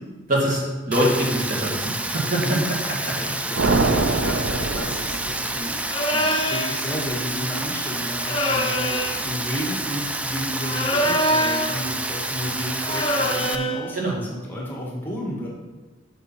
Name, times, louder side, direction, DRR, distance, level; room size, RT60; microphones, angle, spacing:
voice 1, 0.3-2.6 3.0-3.2 13.9-14.2, equal, 45° right, -3 dB, 2.0 m, -23 dB
Rain, 0.9-13.6, right 2 dB, 5° right, 0.3 m, -29 dB
voice 2, 3.2-5.8 6.1-15.5, equal, 10° left, -4 dB, 1.7 m, -32 dB
sound 1, 3.6-5.8, right 3 dB, 70° right, 0.5 m, -24 dB
sound 2, 5.9-6.8 8.2-9.2 10.6-11.8 12.8-13.9, equal, 25° left, 0.7 m, -24 dB
7.7 x 6.6 x 4.5 m, 1.2 s
head